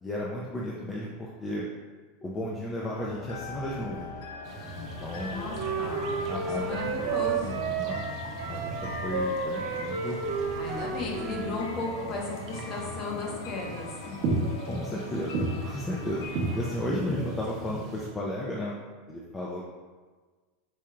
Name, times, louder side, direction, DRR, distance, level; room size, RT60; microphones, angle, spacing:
voice 1, 0.0-1.6 2.2-4.1 4.8-5.4 6.3-7.1 7.6-8.0 8.5-10.2 14.7-16.2 16.5-18.7 19.1-19.7, left 1 dB, 15° left, -4 dB, 0.3 m, -34 dB
sound 1, 2.8-16.8, left 4 dB, 80° left, 0.4 m, -43 dB
sound 2, 4.4-18.1, right 2 dB, 45° right, 0.6 m, -37 dB
voice 2, 5.2-7.7 10.6-14.2, left 3 dB, 35° left, -2 dB, 0.7 m, -35 dB
Wind instrument woodwind instrument, 5.2-11.5, right 4 dB, 90° right, 0.5 m, -32 dB
4.5 x 2.8 x 2.4 m, 1.4 s
supercardioid pair, 155°, 0 cm